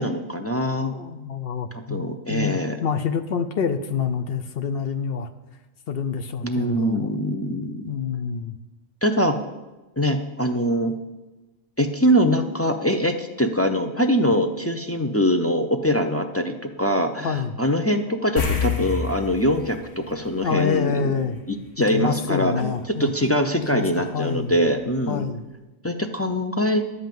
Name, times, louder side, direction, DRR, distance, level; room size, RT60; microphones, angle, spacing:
voice 1, 0.0-0.9 1.9-2.8 6.4-7.9 9.0-9.4 10.0-10.9 11.8-21.2 21.5-22.7 23.0-25.2 25.8-26.8, equal, 20° left, 3 dB, 0.3 m, -23 dB
voice 2, 0.8-5.3 5.9-7.1 7.9-8.6 17.2-17.5 20.4-21.4 21.9-23.3 23.7-24.6 25.1-25.5, left 6 dB, 60° left, 7 dB, 0.8 m, -27 dB
sound 1, 18.4-21.1 21.4-21.6 24.5-24.6 24.9-25.0, left 6 dB, 80° left, 1.6 m, -28 dB
11.5 x 5.4 x 7.6 m, 1.1 s
omnidirectional pair, 1.3 m